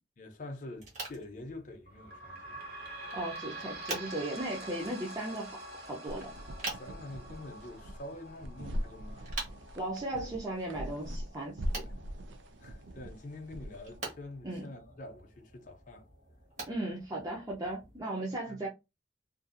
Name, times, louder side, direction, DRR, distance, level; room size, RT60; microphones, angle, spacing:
voice 1, 0.2-2.6 6.4-9.3 11.9-12.0 12.6-16.1 18.5-18.6, left 2 dB, 45° left, 0.5 m, -46 dB
sound 1, 0.7-18.0, right 2 dB, 45° right, 1.1 m, -47 dB
sound 2, 1.9-15.0 15.6-15.7 16.0-16.1 16.9-17.0, right 2 dB, 60° right, 0.9 m, -47 dB
voice 2, 3.1-6.3 9.7-11.8 14.4-14.6 16.7-18.7, right 1 dB, 20° right, 0.5 m, -37 dB
sound 3, 6.1-14.0, equal, 85° right, 0.4 m, -41 dB
2.6 x 2.4 x 2.5 m
head